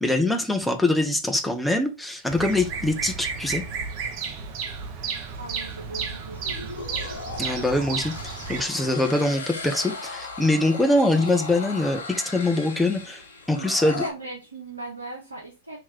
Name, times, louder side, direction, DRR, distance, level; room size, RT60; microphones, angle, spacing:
voice 1, 0.0-3.6 7.0-7.1 7.4-13.2 13.5-14.0, left 2 dB, 5° left, 0.7 m, -23 dB
Bird vocalization bird call bird song, 2.3-8.6, right 5 dB, 50° right, 0.8 m, -33 dB
voice 2, 5.4-6.8 13.5-15.8, right 2 dB, 90° right, 0.8 m, -38 dB
sound 1, 6.3-14.1, left 4 dB, 75° left, 0.8 m, -37 dB
3.0 x 2.9 x 3.6 m
figure-of-eight pair, 95°, 0 cm